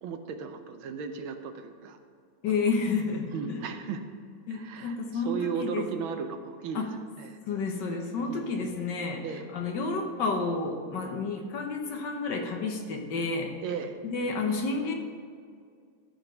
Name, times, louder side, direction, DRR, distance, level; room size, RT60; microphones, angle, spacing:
voice 1, 0.0-2.0 2.5-2.7 3.3-4.0 4.5-6.9 7.2-7.4 8.3-8.5 9.2-9.5 13.6-14.0, right 6 dB, 80° right, 7 dB, 1.6 m, -36 dB
voice 2, 2.4-3.6 4.5-5.8 6.7-6.9 7.5-9.2 9.5-13.5 14.0-14.9, left 4 dB, 65° left, 3 dB, 1.6 m, -30 dB
13.0 x 4.9 x 6.2 m, 2.1 s
omnidirectional pair, 2.2 m